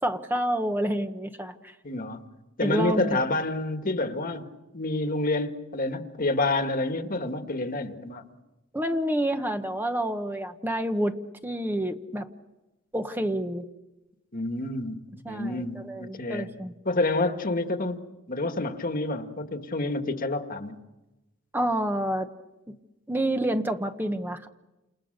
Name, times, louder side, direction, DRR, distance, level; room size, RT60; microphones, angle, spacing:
voice 1, 0.0-1.7 2.6-3.2 8.7-11.2 11.4-12.3 12.9-13.7 15.2-16.7 21.5-22.3 23.1-24.5, right 1 dB, 10° right, 1.0 m, -28 dB
voice 2, 1.8-2.3 2.6-4.5 4.7-8.3 14.3-16.5 16.8-18.0 18.3-20.8, left 2 dB, 40° left, 1.7 m, -28 dB
29.5 x 28.0 x 6.6 m
head